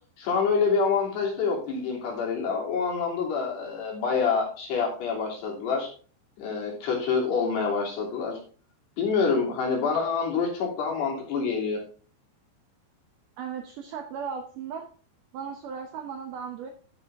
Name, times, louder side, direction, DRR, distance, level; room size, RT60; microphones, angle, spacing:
voice 1, 0.2-5.9 6.4-8.4 9.0-11.8, left 5 dB, 70° left, -2 dB, 5.2 m, -26 dB
voice 2, 13.4-14.9 15.3-16.7, right 6 dB, 75° right, 4 dB, 2.0 m, -36 dB
13.0 x 7.7 x 3.6 m, 0.41 s
omnidirectional pair, 5.0 m